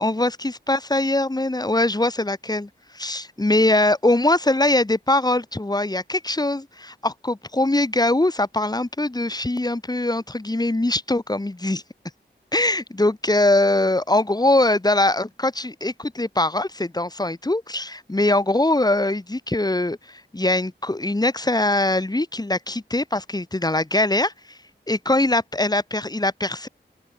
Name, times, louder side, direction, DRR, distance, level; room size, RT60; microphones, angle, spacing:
voice 1, 0.0-11.8 12.5-24.6 24.9-26.7, left 2 dB, 20° left, 1.4 m, -22 dB
open air
wide cardioid pair, 65°, 19 cm